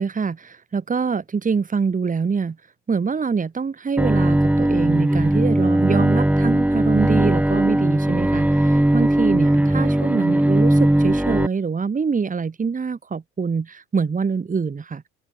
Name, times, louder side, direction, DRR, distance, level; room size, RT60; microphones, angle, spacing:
voice 1, 0.0-2.6 2.9-15.0, right 5 dB, 25° right, 3.5 m, -24 dB
Bowed string instrument, 4.0-11.5, right 1 dB, 5° right, 2.4 m, -18 dB
open air
figure-of-eight pair, 60°, 32 cm